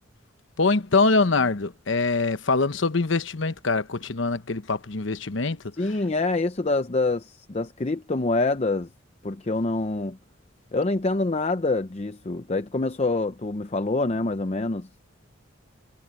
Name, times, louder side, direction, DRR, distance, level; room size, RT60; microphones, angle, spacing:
voice 1, 0.6-5.6, left 3 dB, 70° left, 1.1 m, -23 dB
voice 2, 5.8-8.9 9.2-10.2 10.7-14.9, left 2 dB, 35° left, 0.6 m, -26 dB
head